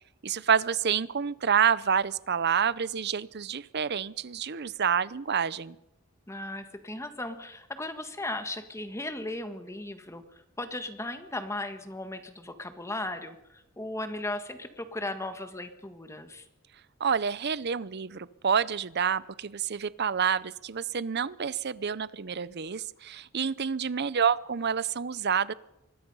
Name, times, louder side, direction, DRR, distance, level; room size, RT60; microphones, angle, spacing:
voice 1, 0.2-5.8 17.0-25.5, right 7 dB, 55° right, 18 dB, 0.7 m, -28 dB
voice 2, 6.3-16.5, left 2 dB, 15° left, 8 dB, 1.6 m, -37 dB
25.0 x 21.0 x 5.5 m, 0.89 s
head